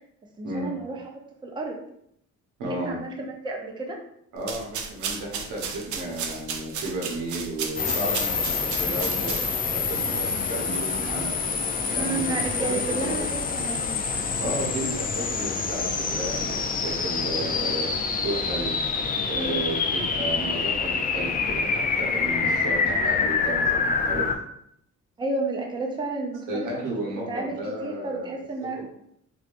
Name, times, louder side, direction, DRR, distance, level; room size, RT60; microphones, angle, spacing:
voice 1, 0.4-1.1 1.4-1.8 2.7-3.1 3.4-4.0 12.0-13.9 19.3-19.6 25.2-27.0 27.3-28.8, right 2 dB, 15° right, 0 dB, 0.6 m, -31 dB
voice 2, 2.6-3.0 4.3-9.4 9.7-11.3 11.9-13.2 14.4-16.6 16.8-17.9 18.2-18.7 19.3-23.8 24.0-24.2 26.5-28.3 28.7-28.8, right 1 dB, 85° right, -3 dB, 1.0 m, -33 dB
sound 1, 4.4-9.7, right 6 dB, 70° right, 0.5 m, -34 dB
sound 2, 7.8-24.3, left 5 dB, 30° left, 0.4 m, -26 dB
3.3 x 2.6 x 2.5 m, 0.73 s
cardioid pair, 90°, 31 cm